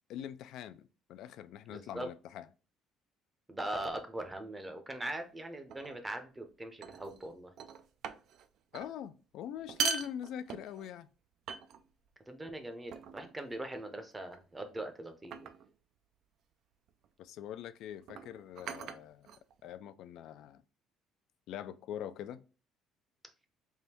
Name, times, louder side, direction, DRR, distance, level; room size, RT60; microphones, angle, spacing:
voice 1, 0.1-2.5 8.7-11.1 17.2-19.3 19.6-20.6 21.5-22.4, left 10 dB, 65° left, 0.3 m, -43 dB
voice 2, 1.7-2.1 3.5-7.5 12.3-15.5, right 1 dB, 10° right, 0.6 m, -41 dB
sound 1, 5.7-6.0 6.8-7.3 7.6-8.5 8.7-8.9 9.6-10.9 11.5-12.1 12.9-13.4 14.3-14.6 15.3-15.7 16.9-17.1 18.0-19.8, right 5 dB, 60° right, 0.4 m, -40 dB
3.5 x 2.6 x 4.2 m
cardioid pair, 145°, 0 cm